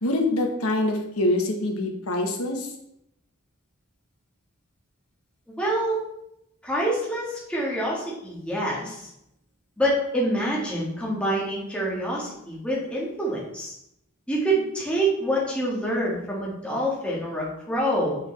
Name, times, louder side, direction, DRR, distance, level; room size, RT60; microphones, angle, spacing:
voice 1, 0.0-2.7, left 1 dB, 85° left, 3 dB, 1.2 m, -25 dB
voice 2, 5.6-6.0 6.6-9.1 9.8-13.7 14.3-18.2, right 1 dB, 5° left, -5 dB, 1.6 m, -26 dB
6.6 x 4.9 x 3.3 m, 0.79 s
head